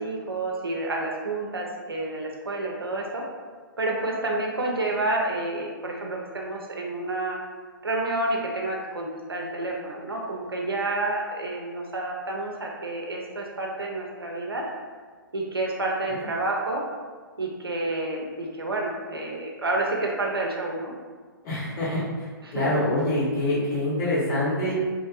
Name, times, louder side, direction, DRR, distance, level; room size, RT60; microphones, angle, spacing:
voice 1, 0.0-3.2 3.8-7.4 7.8-14.6 15.3-16.8 17.4-20.9 22.4-22.6, right 2 dB, 85° right, -1 dB, 0.4 m, -29 dB
voice 2, 21.4-24.7, left 1 dB, 25° left, -9 dB, 1.1 m, -26 dB
2.7 x 2.5 x 2.3 m, 1.5 s
figure-of-eight pair, 120°, 12 cm